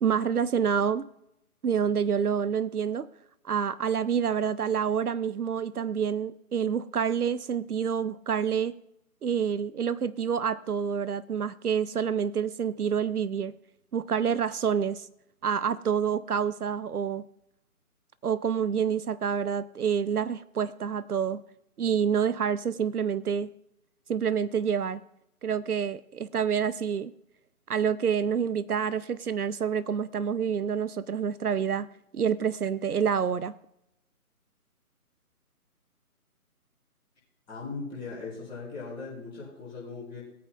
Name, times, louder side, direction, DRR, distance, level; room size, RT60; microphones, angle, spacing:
voice 1, 0.0-1.1 1.6-3.1 3.4-8.8 9.2-13.5 13.9-15.1 15.4-17.2 18.2-21.4 21.8-23.5 24.1-25.0 25.4-27.1 27.7-31.9 32.1-33.5, right 7 dB, 80° right, 17 dB, 0.6 m, -27 dB
voice 2, 37.5-40.2, left 4 dB, 10° left, -8 dB, 5.0 m, -39 dB
20.0 x 8.5 x 2.4 m, 0.84 s
figure-of-eight pair, 145°, 45 cm